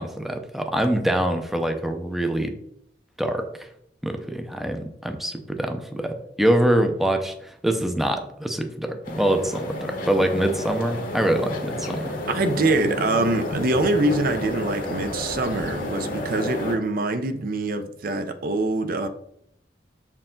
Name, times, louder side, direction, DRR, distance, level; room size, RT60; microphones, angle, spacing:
voice 1, 0.0-2.6 3.2-3.7 4.0-12.2, right 1 dB, ahead, 0.6 m, -24 dB
sound 1, 9.0-16.8, left 1 dB, 50° left, 1.1 m, -31 dB
voice 2, 12.3-19.1, right 2 dB, 55° right, 0.6 m, -24 dB
6.8 x 4.6 x 3.7 m
head